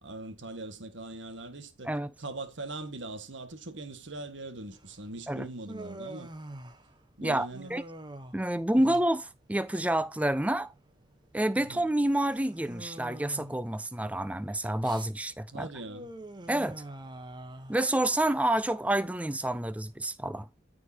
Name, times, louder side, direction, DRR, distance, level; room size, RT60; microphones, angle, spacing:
voice 1, 0.0-1.9 2.2-6.3 7.2-7.7 8.7-9.0 11.6-11.9 15.5-16.1, right 2 dB, 75° right, 1.6 m, -41 dB
Human voice, 4.7-20.0, right 1 dB, 25° right, 1.0 m, -47 dB
voice 2, 7.2-7.8 8.3-10.7 11.3-15.7 16.5-16.8 17.7-20.5, right 1 dB, 5° right, 0.5 m, -28 dB
14.0 x 4.9 x 2.8 m
head